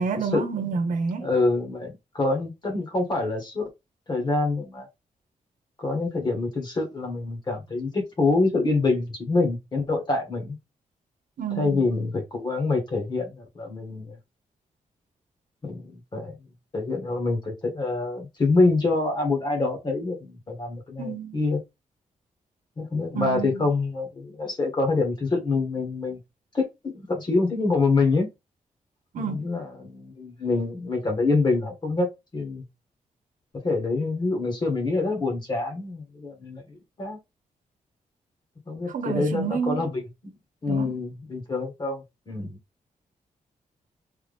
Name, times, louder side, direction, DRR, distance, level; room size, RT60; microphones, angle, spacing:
voice 1, 0.0-1.3 11.4-11.8 21.0-21.4 23.1-23.7 29.1-29.5 38.9-39.9 40.7-41.0, right 5 dB, 80° right, 0.9 m, -29 dB
voice 2, 1.2-3.7 4.1-4.9 5.8-10.6 11.6-14.1 15.6-16.3 16.7-21.6 22.8-26.2 26.5-28.3 29.2-32.1 32.3-32.6 33.6-37.2 38.7-40.3 40.6-42.6, left 3 dB, 35° left, 1.4 m, -26 dB
3.5 x 3.0 x 3.3 m
wide cardioid pair, 150°, 13 cm